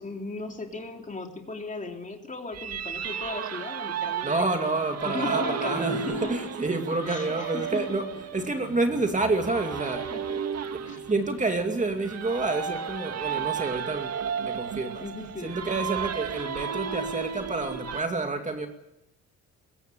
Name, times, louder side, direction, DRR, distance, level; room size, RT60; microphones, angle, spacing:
voice 1, 0.0-4.4 4.6-4.8 5.0-6.4 7.1-8.0 10.1-10.5 10.8-11.0 15.0-15.6, left 3 dB, 25° left, 3.3 m, -36 dB
sound 1, 2.5-18.0, right 7 dB, 55° right, 1.7 m, -34 dB
voice 2, 4.2-10.1 10.7-15.0 15.4-18.7, right 3 dB, 25° right, 2.5 m, -29 dB
21.5 x 16.0 x 9.3 m
cardioid pair, 90°, 30 cm